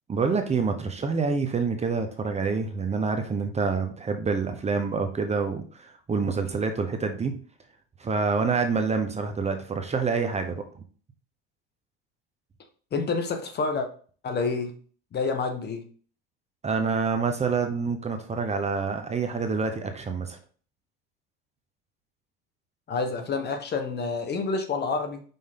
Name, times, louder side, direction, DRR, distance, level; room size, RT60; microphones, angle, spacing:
voice 1, 0.1-7.4 8.0-10.8 16.6-20.4, right 4 dB, 20° right, 6 dB, 0.9 m, -27 dB
voice 2, 12.9-13.9 14.2-14.7 15.1-15.8 22.9-25.2, left 4 dB, 35° left, 6 dB, 1.3 m, -28 dB
5.5 x 5.4 x 3.8 m, 0.42 s
supercardioid pair, 105°, 29 cm